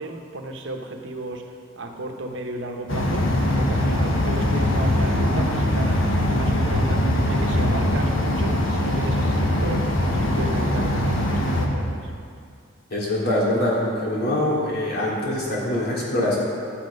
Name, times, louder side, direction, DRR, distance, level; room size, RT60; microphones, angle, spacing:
voice 1, 0.0-1.4 1.8-12.1, right 2 dB, 70° right, 3 dB, 1.0 m, -34 dB
sound 1, 2.9-11.7, left 1 dB, 80° left, 1.3 m, -22 dB
voice 2, 12.9-16.4, left 1 dB, 50° left, -6 dB, 2.9 m, -23 dB
11.5 x 8.9 x 5.2 m, 2.3 s
head